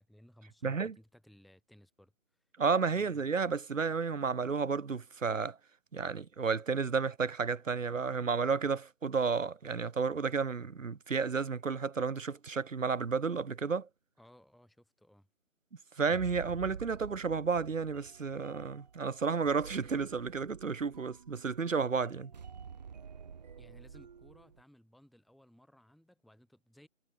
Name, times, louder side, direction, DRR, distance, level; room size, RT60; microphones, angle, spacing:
voice 1, 0.0-2.4 2.9-3.2 14.2-15.3 23.6-26.9, equal, ahead, 1.5 m, -60 dB
voice 2, 0.6-0.9 2.6-5.6 5.9-13.9 16.0-22.3, right 5 dB, 70° right, 1.1 m, -32 dB
sound 1, 16.1-24.6, right 6 dB, 30° right, 3.0 m, -49 dB
figure-of-eight pair, 160°, 40 cm